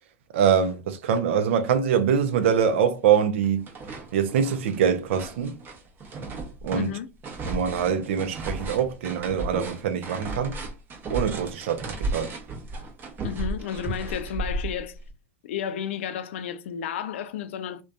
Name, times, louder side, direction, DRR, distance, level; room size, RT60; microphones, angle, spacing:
voice 1, 0.3-3.7 4.1-5.6 6.6-7.0 7.4-10.6 11.1-12.3, right 8 dB, 70° right, 0.4 m, -24 dB
sound 1, 2.0-2.1 2.4-3.2 3.4-15.1, right 2 dB, 30° right, 0.7 m, -34 dB
voice 2, 6.7-7.1 13.2-15.0 15.4-17.8, left 9 dB, 75° left, 0.3 m, -32 dB
2.5 x 2.2 x 2.2 m
hypercardioid pair, 100°, 7 cm